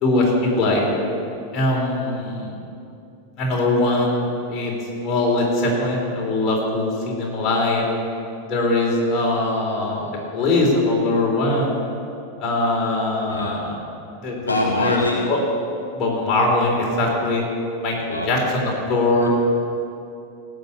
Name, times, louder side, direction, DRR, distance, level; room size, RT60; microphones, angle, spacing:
voice 1, 0.0-0.8 1.5-2.5 3.4-4.7 5.0-7.8 8.5-10.1 10.3-11.8 12.4-13.8 14.2-15.0 15.3-15.4 15.9-17.4 17.8-19.3, left 2 dB, 30° left, -3 dB, 4.0 m, -21 dB
voice 2, 13.3-13.6 14.5-15.4 18.0-18.5 19.2-19.3, left 2 dB, 80° left, 2 dB, 1.0 m, -25 dB
17.0 x 6.4 x 8.6 m, 2.6 s
figure-of-eight pair, 90°, 0 cm